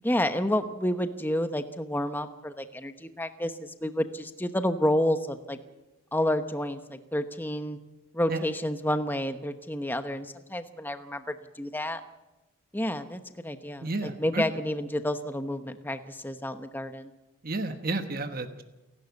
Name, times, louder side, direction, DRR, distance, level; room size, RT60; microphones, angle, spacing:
voice 1, 0.0-5.6 6.1-7.8 8.1-12.0 12.7-17.1, left 1 dB, 10° left, 9 dB, 0.9 m, -30 dB
voice 2, 13.8-14.4 17.4-18.6, right 2 dB, 40° right, 7 dB, 1.3 m, -31 dB
28.5 x 12.0 x 8.3 m, 1.0 s
head